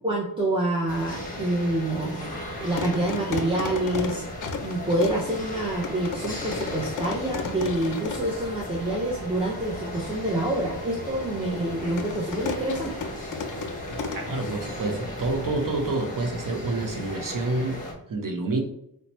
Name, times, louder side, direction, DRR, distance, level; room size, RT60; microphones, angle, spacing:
voice 1, 0.0-4.2 4.6-13.1, right 1 dB, 15° right, -4 dB, 0.6 m, -27 dB
sound 1, 0.9-17.9, left 1 dB, 20° left, 0.9 m, -37 dB
sound 2, 2.2-16.2, left 5 dB, 50° left, 0.4 m, -36 dB
voice 2, 14.3-18.6, right 2 dB, 55° right, 2 dB, 0.6 m, -28 dB
2.9 x 2.1 x 4.1 m, 0.75 s
wide cardioid pair, 95°, 40 cm